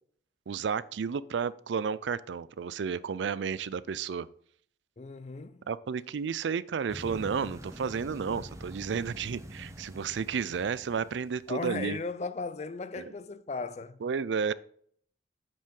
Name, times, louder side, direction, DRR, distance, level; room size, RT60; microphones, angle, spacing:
voice 1, 0.5-4.3 5.7-12.0 13.0-13.1 14.0-14.5, right 6 dB, 85° right, 0.4 m, -32 dB
voice 2, 5.0-5.6 11.5-14.0, left 3 dB, 35° left, 0.5 m, -36 dB
sound 1, 6.9-11.5, equal, 15° right, 0.8 m, -45 dB
8.6 x 5.3 x 3.8 m
head